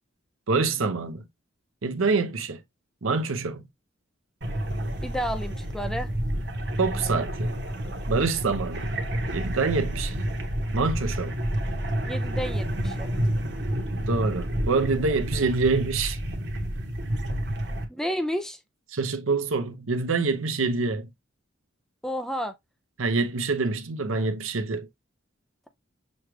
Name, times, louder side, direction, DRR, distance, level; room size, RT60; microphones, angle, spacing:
voice 1, 0.5-1.3 1.8-2.6 3.0-3.6 6.8-7.5 8.1-8.9 9.3-10.2 10.7-11.4 14.1-16.2 18.9-21.1 23.0-24.9, right 4 dB, 90° right, 0.8 m, -26 dB
sound 1, 4.4-17.8, equal, 55° right, 1.0 m, -29 dB
voice 2, 5.0-6.1 12.1-13.1 17.9-18.6 22.0-22.5, equal, ahead, 0.3 m, -31 dB
6.3 x 2.4 x 3.1 m
head